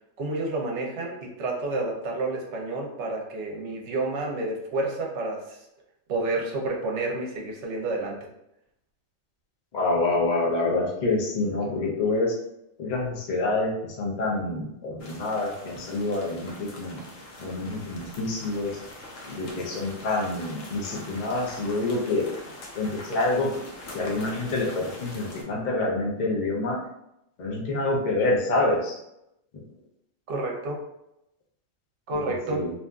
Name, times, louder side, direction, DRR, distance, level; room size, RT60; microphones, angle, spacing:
voice 1, 0.2-5.6 6.1-8.2 30.3-30.8 32.1-32.6, right 2 dB, 70° right, -1 dB, 0.9 m, -30 dB
voice 2, 9.7-12.4 12.8-17.0 17.4-18.8 19.2-22.3 22.7-23.5 23.9-26.8 27.4-29.0 29.5-29.6 32.3-32.7, left 2 dB, 50° left, -1 dB, 0.5 m, -27 dB
sound 1, 15.0-25.4, left 1 dB, 75° left, 1.0 m, -43 dB
2.7 x 2.4 x 2.2 m, 0.82 s
omnidirectional pair, 1.4 m